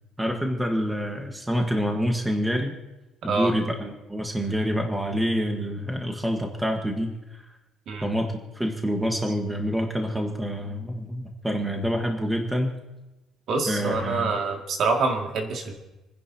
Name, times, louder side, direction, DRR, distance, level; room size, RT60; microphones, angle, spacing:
voice 1, 0.2-2.8 3.2-7.4 8.0-12.8 13.7-14.3, equal, 5° right, 2 dB, 1.4 m, -27 dB
voice 2, 13.5-15.7, right 3 dB, 50° right, 2 dB, 2.2 m, -26 dB
29.5 x 10.5 x 2.9 m, 1.0 s
cardioid pair, 155°, 0 cm